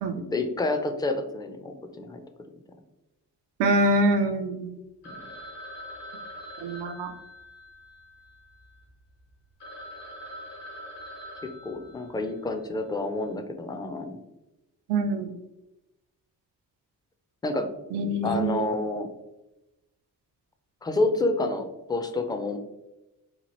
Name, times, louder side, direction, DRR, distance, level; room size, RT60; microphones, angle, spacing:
voice 1, 0.1-2.2 5.0-5.2 11.6-14.2 17.4-17.7 18.2-19.1 20.8-22.6, left 2 dB, 10° left, 6 dB, 0.4 m, -29 dB
voice 2, 3.6-4.7 6.6-7.1 14.9-15.3 17.9-18.7, right 1 dB, 85° right, 5 dB, 0.5 m, -25 dB
Telephone, 5.0-8.8 9.3-9.4 9.6-12.5, equal, 65° left, 1.2 m, -43 dB
3.0 x 2.4 x 2.9 m, 0.97 s
supercardioid pair, 50°, 41 cm